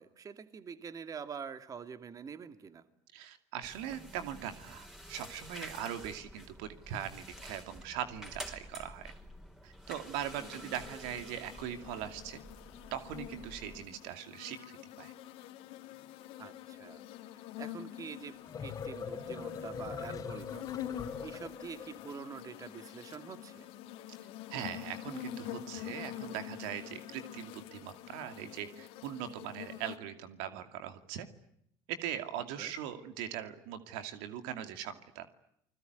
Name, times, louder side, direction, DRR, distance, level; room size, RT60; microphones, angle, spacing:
voice 1, 0.0-2.8 10.4-10.7 16.4-17.0 17.3-20.7 21.2-23.7 32.6-32.7, right 6 dB, 35° right, 10 dB, 2.3 m, -46 dB
voice 2, 3.1-9.1 9.6-12.4 12.9-15.1 24.5-31.3 31.9-35.3, right 10 dB, 80° right, 9 dB, 2.5 m, -41 dB
sound 1, 3.6-13.8, equal, 5° right, 5.0 m, -50 dB
sound 2, 10.3-30.0, left 12 dB, 70° left, 2.8 m, -46 dB
sound 3, 18.2-22.1, left 6 dB, 35° left, 3.9 m, -42 dB
29.5 x 21.0 x 9.4 m, 0.72 s
supercardioid pair, 90°, 10 cm